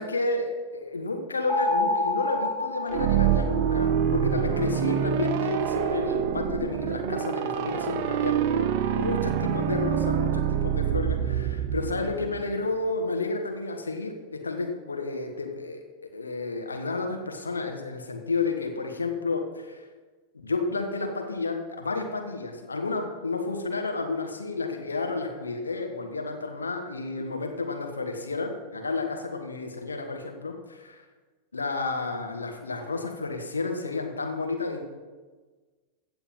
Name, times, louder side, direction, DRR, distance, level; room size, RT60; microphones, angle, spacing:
voice 1, 0.0-15.8 16.1-19.8 20.4-31.0 31.5-34.9, left 3 dB, 75° left, 4 dB, 1.6 m, -31 dB
sound 1, 1.5-3.9, left 2 dB, 15° left, 2.7 m, -28 dB
sound 2, 2.9-12.6, right 9 dB, 45° right, 0.8 m, -26 dB
15.5 x 7.0 x 5.6 m, 1.4 s
figure-of-eight pair, 90°, 0 cm